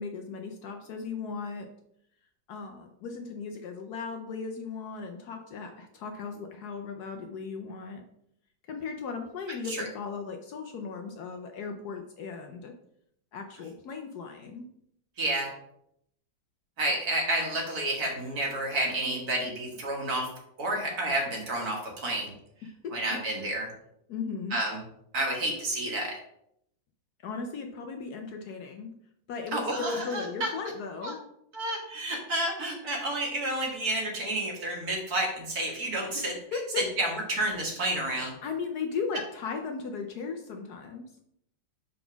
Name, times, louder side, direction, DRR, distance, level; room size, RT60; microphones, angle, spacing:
voice 1, 0.0-1.7 2.5-8.0 8.7-12.7 13.3-14.6 22.8-22.9 24.1-24.6 27.2-29.0 29.3-31.2 36.1-36.2 36.5-36.8 38.4-41.1, left 5 dB, 65° left, 4 dB, 1.1 m, -36 dB
voice 2, 15.2-15.5 16.8-20.3 20.6-22.3 22.9-23.7 24.5-24.8 25.1-26.2 29.5-30.5 31.0-31.1 31.5-36.3 36.8-38.3, right 1 dB, 55° right, 0 dB, 1.9 m, -30 dB
5.0 x 4.0 x 5.8 m, 0.74 s
omnidirectional pair, 2.0 m